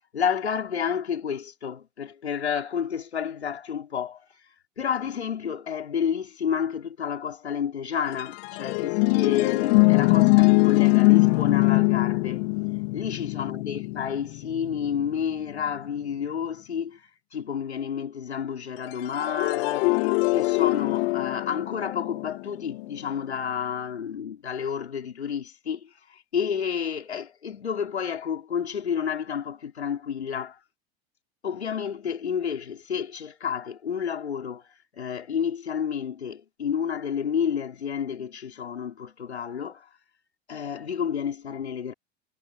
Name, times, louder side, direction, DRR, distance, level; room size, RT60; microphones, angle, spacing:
voice 1, 0.1-4.2 4.8-12.4 12.9-17.0 17.3-20.0 20.3-30.6 31.4-34.7 34.9-39.9 40.5-41.9, left 7 dB, 90° left, 4.6 m, -30 dB
sound 1, 8.1-15.7 18.9-23.0, left 27 dB, 65° left, 3.0 m, -22 dB
hypercardioid pair, 85°, 32 cm